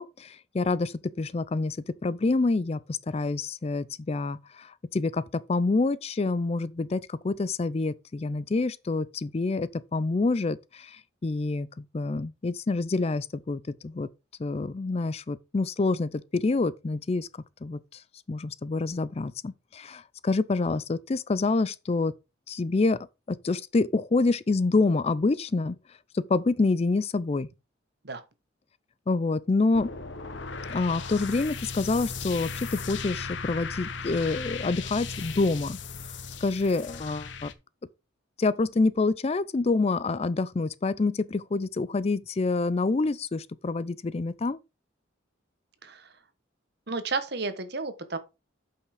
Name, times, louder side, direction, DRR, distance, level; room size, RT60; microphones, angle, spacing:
voice 1, 0.0-14.1 14.4-17.3 17.6-18.0 18.3-22.1 22.5-23.0 23.3-25.8 26.1-27.5 29.1-29.9 30.7-35.8 36.4-37.5 38.4-44.6, left 3 dB, 30° left, 0.4 m, -27 dB
sound 1, 29.7-37.5, left 5 dB, 65° left, 1.0 m, -37 dB
voice 2, 45.8-46.1 46.9-48.2, right 3 dB, 55° right, 1.2 m, -32 dB
8.1 x 5.7 x 4.9 m
head